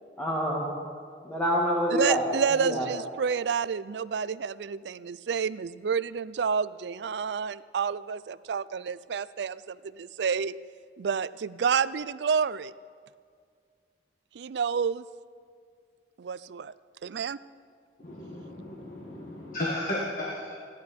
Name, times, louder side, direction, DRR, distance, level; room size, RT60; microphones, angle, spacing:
voice 1, 0.2-0.7 1.2-2.9, equal, 10° left, -4 dB, 1.9 m, -27 dB
voice 2, 2.0-10.5 11.0-12.7 14.3-15.0 16.2-16.7 17.0-17.4, right 6 dB, 75° right, 18 dB, 0.4 m, -29 dB
voice 3, 18.0-20.5, left 1 dB, 45° left, -4 dB, 1.8 m, -34 dB
29.5 x 11.5 x 4.3 m, 2.1 s
head